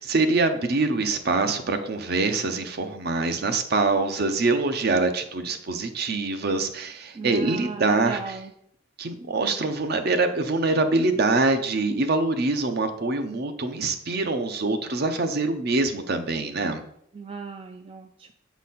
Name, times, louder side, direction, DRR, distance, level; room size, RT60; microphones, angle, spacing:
voice 1, 0.0-8.4 9.0-16.8, right 3 dB, 55° right, 7 dB, 0.7 m, -24 dB
voice 2, 7.1-8.5 17.1-18.3, right 4 dB, 30° right, 6 dB, 0.3 m, -36 dB
7.3 x 4.1 x 4.1 m, 0.71 s
head